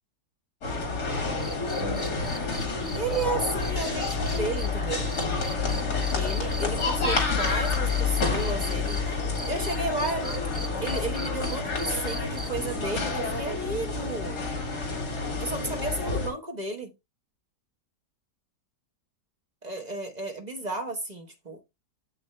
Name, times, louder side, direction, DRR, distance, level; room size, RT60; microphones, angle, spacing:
sound 1, 0.6-16.3, left 4 dB, 65° left, 3.0 m, -29 dB
sound 2, 1.4-9.0 9.3-12.7 14.3-14.4, right 2 dB, 15° right, 0.6 m, -40 dB
voice 1, 2.9-5.1 6.1-10.3 10.8-14.5 15.4-16.9 19.6-21.6, right 2 dB, 30° right, 0.9 m, -33 dB
7.6 x 6.1 x 3.3 m
omnidirectional pair, 1.9 m